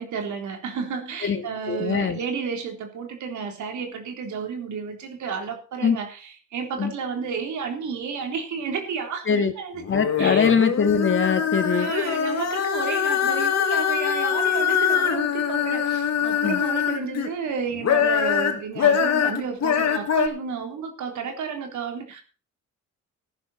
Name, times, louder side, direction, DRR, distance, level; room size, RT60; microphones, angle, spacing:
voice 1, 0.0-10.5 11.7-22.2, right 6 dB, 70° right, 4 dB, 3.7 m, -32 dB
voice 2, 1.2-2.2 5.8-6.0 6.8-6.9 9.3-9.5 9.9-11.9 16.4-16.6, left 6 dB, 40° left, 7 dB, 2.2 m, -22 dB
sound 1, 9.8-17.3 17.7-20.3, left 8 dB, 60° left, 2.6 m, -23 dB
14.0 x 11.0 x 4.3 m, 0.37 s
cardioid pair, 90°, 30 cm